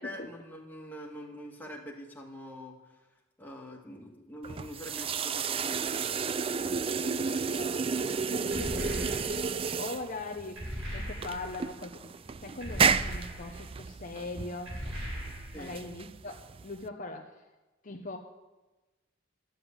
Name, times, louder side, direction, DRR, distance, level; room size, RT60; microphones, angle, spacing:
voice 1, 0.0-3.1 3.4-6.3 15.5-15.8, equal, 10° left, -1 dB, 1.8 m, -45 dB
sound 1, 4.4-16.9, right 5 dB, 25° right, 0.3 m, -32 dB
voice 2, 6.7-9.4 9.8-12.1 12.4-14.8 15.5-17.4 17.8-18.2, left 2 dB, 40° left, 3 dB, 0.9 m, -41 dB
sound 2, 8.5-9.6 10.6-11.6 12.6-13.7 14.7-15.7, equal, 80° right, 5.0 m, -38 dB
12.0 x 8.0 x 8.2 m, 1.1 s
head